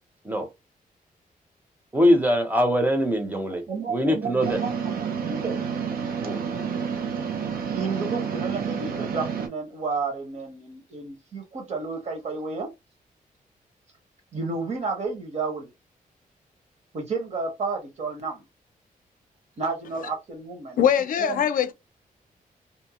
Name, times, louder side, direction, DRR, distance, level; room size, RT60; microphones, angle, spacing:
voice 1, 1.9-3.6 3.9-4.6 6.2-6.4, equal, 10° right, 0.6 m, -22 dB
voice 2, 3.7-5.7 7.7-12.7 14.3-15.7 16.9-18.4 19.6-20.8 21.2-21.5, right 4 dB, 50° right, 1.0 m, -31 dB
sound 1, 4.4-9.5, right 6 dB, 85° right, 0.5 m, -29 dB
voice 3, 20.8-21.7, left 9 dB, 65° left, 0.4 m, -21 dB
2.7 x 2.1 x 2.8 m
wide cardioid pair, 170°, 15 cm